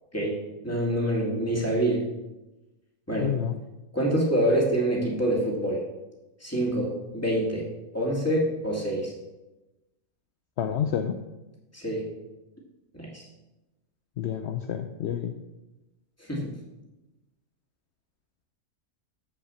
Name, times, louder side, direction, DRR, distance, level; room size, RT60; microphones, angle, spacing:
voice 1, 0.6-2.0 3.1-3.3 3.9-5.8 6.4-7.6 7.9-9.1 11.7-12.0 12.9-13.2 16.3-16.5, right 1 dB, 10° left, -2 dB, 2.4 m, -26 dB
voice 2, 3.2-3.6 10.6-11.1 14.2-15.3, left 9 dB, 65° left, 7 dB, 0.7 m, -28 dB
7.4 x 7.3 x 7.1 m, 1.0 s
omnidirectional pair, 1.6 m